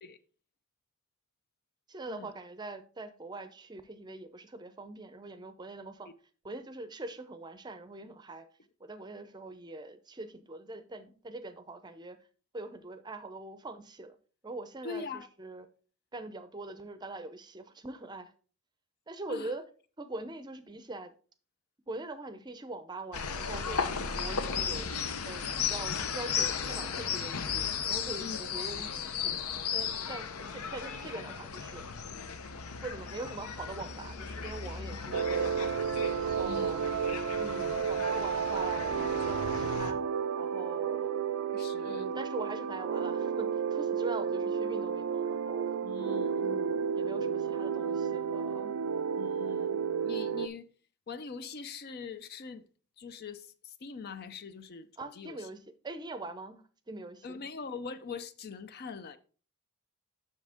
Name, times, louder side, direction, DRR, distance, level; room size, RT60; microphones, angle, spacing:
voice 1, 1.9-6.1 6.4-8.5 8.8-12.2 12.5-14.2 14.4-15.7 16.1-18.3 19.1-19.6 20.0-21.1 21.9-24.9 25.2-28.9 29.2-29.4 29.7-31.9 32.8-35.8 36.2-36.8 37.4-40.0 40.4-41.2 41.8-45.8 46.4-48.7 55.0-55.6 55.8-57.4, right 2 dB, 20° right, 0.6 m, -43 dB
voice 2, 14.8-15.3 19.3-19.5 28.2-28.4 34.8-34.9 36.4-36.7 41.5-42.1 45.8-46.5 49.2-50.7 51.1-52.7 53.0-55.5 57.2-59.2, left 5 dB, 45° left, 0.5 m, -42 dB
sound 1, 23.1-39.9, left 6 dB, 80° left, 0.7 m, -36 dB
sound 2, 35.1-50.5, right 7 dB, 80° right, 0.5 m, -32 dB
7.5 x 6.2 x 3.5 m
head